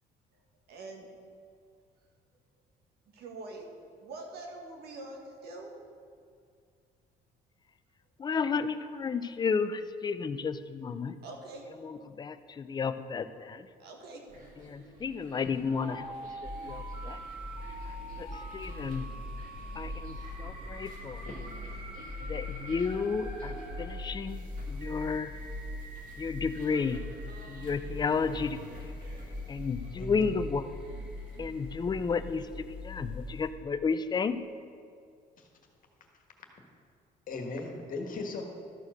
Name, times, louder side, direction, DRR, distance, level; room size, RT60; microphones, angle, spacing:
voice 1, 0.7-1.1 3.1-3.7 4.0-5.7 11.2-11.7 13.8-14.2, right 2 dB, 70° right, 1 dB, 1.8 m, -44 dB
voice 2, 8.2-11.2 11.8-13.7 14.6-16.1 16.6-17.2 17.9-18.3 18.5-19.1 19.8-21.2 22.3-25.3 26.2-27.0 27.5-28.9 29.5-30.7 31.4-34.4, left 5 dB, 25° left, 11 dB, 0.5 m, -32 dB
sound 1, 14.3-32.6, right 1 dB, 55° right, 2.0 m, -52 dB
sound 2, 15.7-23.9, right 2 dB, 35° right, 2.0 m, -45 dB
sound 3, 16.4-33.5, left 2 dB, 5° right, 2.0 m, -42 dB
voice 3, 30.0-30.4 35.4-35.5 37.3-38.4, left 3 dB, 55° left, 2 dB, 1.6 m, -38 dB
13.0 x 4.7 x 6.5 m, 2.3 s
cardioid pair, 110°, 17 cm